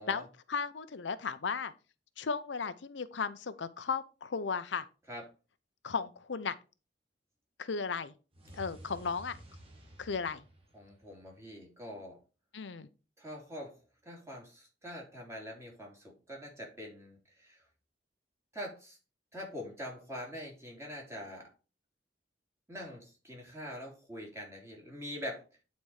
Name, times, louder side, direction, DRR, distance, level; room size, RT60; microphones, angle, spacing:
voice 1, 0.0-1.7 2.2-4.9 5.8-6.5 7.6-8.1 8.5-9.4 10.0-10.4 12.5-12.9, left 5 dB, 80° left, 0.6 m, -35 dB
sound 1, 8.3-11.5, right 1 dB, 30° right, 2.1 m, -53 dB
voice 2, 10.7-12.2 13.2-13.7 14.0-17.6 18.5-19.0 19.3-21.5 22.7-25.4, equal, 15° right, 2.9 m, -44 dB
9.3 x 4.2 x 4.8 m
head